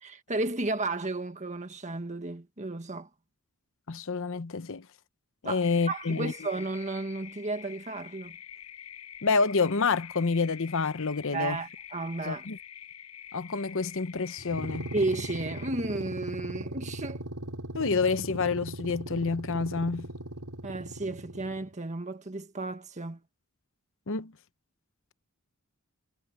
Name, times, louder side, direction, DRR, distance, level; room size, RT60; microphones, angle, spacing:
voice 1, 0.0-3.1 5.4-8.4 11.3-12.5 14.9-17.2 20.6-23.2, right 2 dB, 30° right, 1.6 m, -33 dB
voice 2, 3.9-4.9 5.4-6.3 9.2-11.6 12.2-12.6 13.3-14.9 17.7-20.1 24.1-24.3, left 4 dB, 60° left, 0.9 m, -28 dB
sound 1, 5.6-15.7, left 9 dB, 85° left, 7.2 m, -47 dB
sound 2, 14.4-21.7, right 1 dB, 85° right, 5.5 m, -39 dB
head